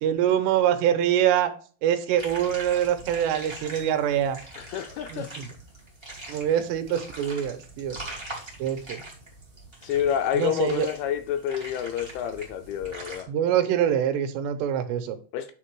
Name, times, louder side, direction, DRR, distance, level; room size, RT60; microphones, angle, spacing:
voice 1, 0.0-1.5 1.8-4.4 5.1-5.4 6.3-8.0 8.6-9.0 10.3-10.9 13.3-15.2, right 10 dB, 90° right, 3.1 m, -24 dB
sound 1, 2.2-13.2, right 2 dB, 10° right, 1.3 m, -42 dB
voice 2, 4.6-5.3 9.8-13.3 15.3-15.5, left 10 dB, 80° left, 2.3 m, -28 dB
9.3 x 4.0 x 4.7 m
omnidirectional pair, 4.9 m